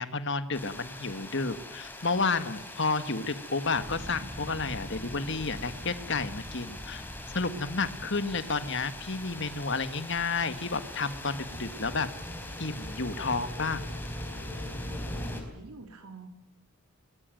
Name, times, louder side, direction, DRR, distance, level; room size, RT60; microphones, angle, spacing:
voice 1, 0.0-7.0 7.3-12.1 12.6-13.8, left 4 dB, 55° left, 11 dB, 1.8 m, -31 dB
sound 1, 0.5-15.4, left 1 dB, 10° left, 4.1 m, -40 dB
voice 2, 15.3-16.3, right 4 dB, 90° right, 6 dB, 3.2 m, -47 dB
23.5 x 21.0 x 9.2 m, 0.94 s
head